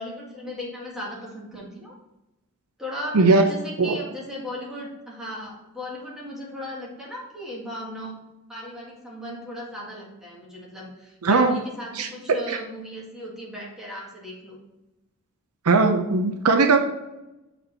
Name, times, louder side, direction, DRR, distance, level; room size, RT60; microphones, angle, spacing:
voice 1, 0.0-1.9 2.8-8.2 8.5-14.6, equal, ahead, -4 dB, 1.9 m, -36 dB
voice 2, 3.1-3.5 3.8-4.0 11.2-11.6 12.0-12.1 12.5-12.6 15.7-16.8, right 3 dB, 75° right, 6 dB, 0.7 m, -18 dB
7.1 x 4.2 x 4.4 m, 0.96 s
head